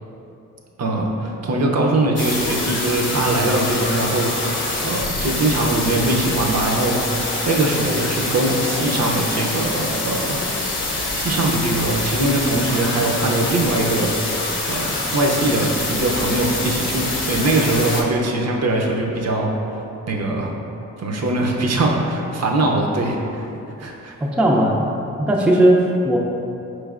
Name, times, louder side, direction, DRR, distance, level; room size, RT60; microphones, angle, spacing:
voice 1, 0.8-10.4 11.1-19.5 20.1-20.5 21.0-23.5 23.8-24.1, right 2 dB, 50° right, 0 dB, 0.6 m, -21 dB
sound 1, 2.2-18.0, left 2 dB, 35° left, 0.7 m, -25 dB
voice 2, 24.2-24.9 25.2-26.2, right 1 dB, 5° right, -2 dB, 0.4 m, -16 dB
4.6 x 3.2 x 2.4 m, 2.9 s
cardioid pair, 70°, 34 cm